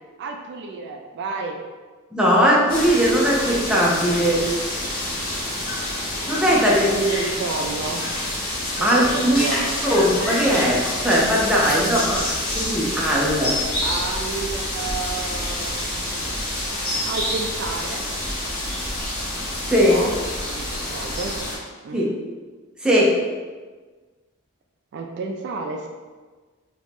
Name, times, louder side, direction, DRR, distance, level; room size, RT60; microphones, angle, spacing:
voice 1, 0.0-1.6 6.6-8.1 8.8-9.8 11.8-12.4 13.8-16.3 17.1-18.1 19.9-20.1 20.6-21.4 21.8-22.0 24.9-25.9, right 4 dB, 55° right, 2 dB, 0.3 m, -31 dB
voice 2, 2.1-4.5 6.3-6.8 8.8-9.5 9.8-12.2 12.5-13.6 19.7-20.0 21.9-22.1 22.8-23.2, equal, 5° right, -5 dB, 0.5 m, -19 dB
sound 1, 2.7-21.6, left 1 dB, 45° left, 1.2 m, -27 dB
2.9 x 2.6 x 3.5 m, 1.4 s
head